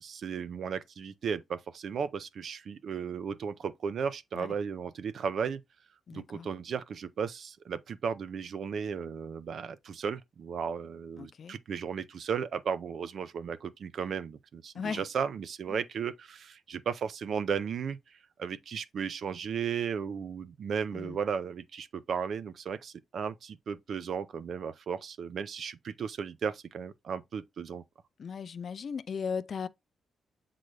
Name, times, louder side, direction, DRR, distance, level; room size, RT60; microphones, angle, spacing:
voice 1, 0.0-5.6 6.1-18.0 18.4-27.8, right 6 dB, 55° right, 0.5 m, -35 dB
voice 2, 6.1-6.5 11.2-11.6 14.7-15.0 15.7-15.8 20.9-21.2 28.2-29.7, left 6 dB, 45° left, 0.4 m, -37 dB
7.7 x 3.8 x 3.2 m
wide cardioid pair, 150°, 0 cm